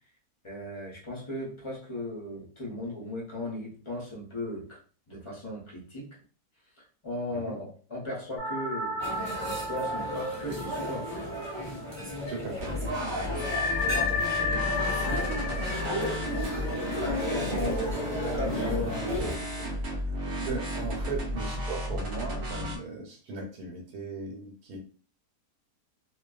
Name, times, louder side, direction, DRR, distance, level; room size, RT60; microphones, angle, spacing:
voice 1, 0.4-4.8 5.1-6.2 6.8-9.0 9.4-11.5 15.4-16.2 17.0-19.8, left 1 dB, 40° left, -5 dB, 0.4 m, -37 dB
sound 1, 8.4-12.4 12.7-12.8 13.4-18.1, left 3 dB, 90° left, 1.2 m, -33 dB
sound 2, 9.0-19.3, equal, 25° right, 0.6 m, -34 dB
voice 2, 12.3-12.7 14.0-14.2 20.1-24.8, right 4 dB, 80° right, 0 dB, 1.2 m, -38 dB
sound 3, 12.6-22.8, equal, 65° right, 0.8 m, -34 dB
2.5 x 2.2 x 2.3 m, 0.40 s
omnidirectional pair, 1.7 m